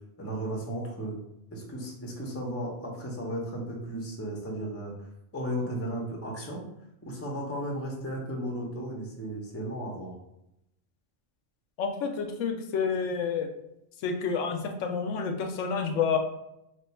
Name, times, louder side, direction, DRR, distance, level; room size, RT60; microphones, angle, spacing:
voice 1, 0.2-1.2 1.5-4.9 5.3-6.6 7.0-10.2, right 1 dB, 15° left, -1 dB, 0.5 m, -35 dB
voice 2, 11.8-13.5 14.0-16.2, left 6 dB, 85° left, 5 dB, 0.9 m, -29 dB
3.0 x 2.2 x 4.2 m, 0.83 s
omnidirectional pair, 1.2 m